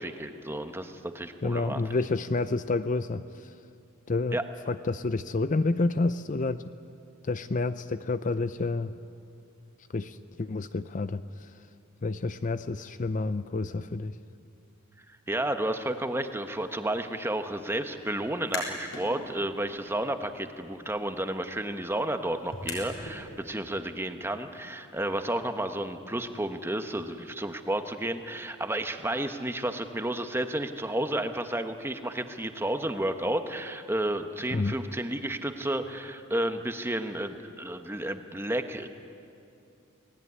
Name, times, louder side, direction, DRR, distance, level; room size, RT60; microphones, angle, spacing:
voice 1, 0.0-1.8 4.3-4.4 15.1-38.9, right 1 dB, 10° right, 7 dB, 1.2 m, -32 dB
voice 2, 1.4-3.5 4.1-4.4 4.7-6.7 7.2-8.9 9.9-11.5 12.0-14.2 34.5-34.8, left 3 dB, 35° left, 12 dB, 0.5 m, -29 dB
sound 1, 18.3-19.1 19.5-23.2, left 3 dB, 60° left, 6.1 m, -41 dB
29.5 x 19.0 x 9.6 m, 2.6 s
head